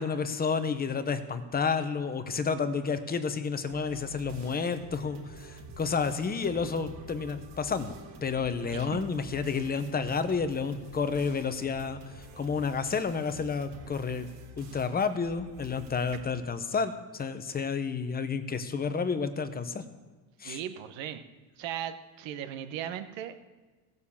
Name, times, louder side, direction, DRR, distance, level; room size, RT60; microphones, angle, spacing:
voice 1, 0.0-8.0 8.2-12.0 12.4-14.3 14.6-19.8 20.4-20.6, left 5 dB, 20° left, 10 dB, 0.9 m, -30 dB
sound 1, 3.7-16.2, right 2 dB, 80° right, 3.7 m, -48 dB
voice 2, 8.6-9.0 16.2-16.3 20.4-21.2 21.6-23.3, right 10 dB, 65° right, 9 dB, 1.3 m, -37 dB
15.5 x 6.7 x 7.2 m, 1.3 s
cardioid pair, 125°, 49 cm